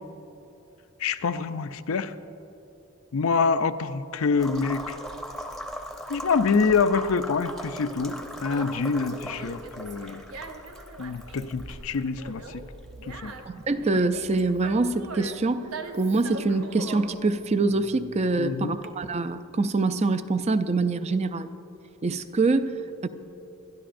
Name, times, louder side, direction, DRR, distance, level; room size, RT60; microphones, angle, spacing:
voice 1, 1.0-2.1 3.1-5.0 6.1-10.2 11.0-12.6 13.0-13.3 18.4-18.8, left 5 dB, 75° left, 11 dB, 0.5 m, -26 dB
sound 1, 4.4-14.2, equal, ahead, 0.7 m, -40 dB
Conversation, 7.0-18.8, right 3 dB, 75° right, 0.9 m, -42 dB
sound 2, 12.6-18.6, right 1 dB, 55° right, 1.1 m, -51 dB
voice 2, 13.5-15.7 15.9-21.5 22.0-23.1, right 3 dB, 30° right, 11 dB, 0.4 m, -25 dB
21.5 x 12.5 x 2.6 m, 3.0 s
head